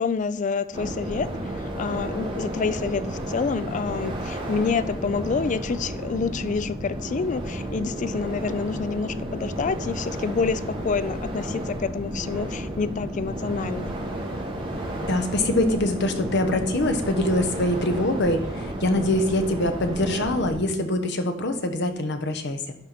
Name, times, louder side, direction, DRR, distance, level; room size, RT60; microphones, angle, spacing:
voice 1, 0.0-13.9, left 5 dB, 40° left, 15 dB, 0.3 m, -28 dB
sound 1, 0.7-20.6, right 1 dB, 25° right, 2.1 m, -32 dB
voice 2, 15.0-22.7, left 1 dB, 60° left, 7 dB, 1.0 m, -24 dB
12.0 x 4.5 x 4.2 m, 0.78 s
head